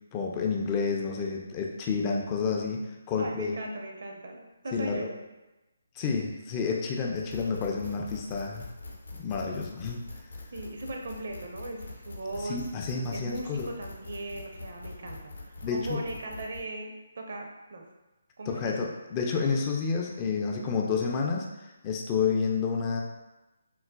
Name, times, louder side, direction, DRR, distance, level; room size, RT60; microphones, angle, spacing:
voice 1, 0.1-3.5 4.7-5.0 6.0-8.7 9.2-10.0 12.4-13.7 15.6-16.0 18.5-23.0, left 5 dB, 25° left, 0 dB, 0.3 m, -30 dB
voice 2, 3.2-5.2 10.5-12.6 13.1-17.8 18.4-19.0, right 2 dB, 55° right, 1 dB, 0.5 m, -38 dB
sound 1, 7.1-16.6, left 3 dB, 80° left, 0.6 m, -44 dB
3.8 x 2.1 x 2.2 m, 1.0 s
figure-of-eight pair, 145°, 0 cm